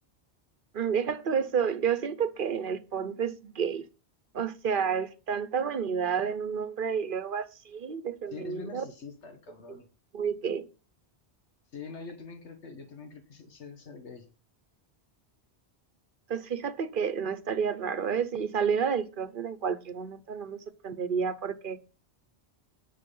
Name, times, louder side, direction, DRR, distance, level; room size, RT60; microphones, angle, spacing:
voice 1, 0.7-3.8 4.3-8.9 9.7-9.8 10.1-10.7 16.3-21.8, right 7 dB, 55° right, 1.0 m, -30 dB
voice 2, 8.3-9.9 11.7-14.3, left 4 dB, 90° left, 1.7 m, -44 dB
10.5 x 6.5 x 5.4 m
omnidirectional pair, 1.1 m